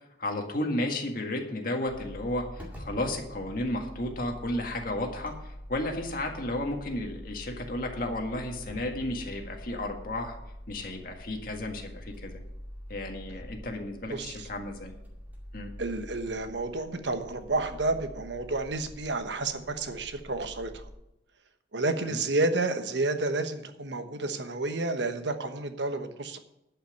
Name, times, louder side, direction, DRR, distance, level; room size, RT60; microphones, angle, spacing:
voice 1, 0.2-10.4 10.7-12.4 12.9-14.9 15.5-15.7 21.9-22.2, left 1 dB, 50° left, 2 dB, 1.8 m, -33 dB
sound 1, 1.8-20.9, equal, 10° right, 2.2 m, -45 dB
voice 2, 14.1-14.5 15.8-20.9 21.7-26.4, right 2 dB, 75° right, 8 dB, 1.1 m, -30 dB
11.5 x 5.8 x 8.0 m, 0.85 s
head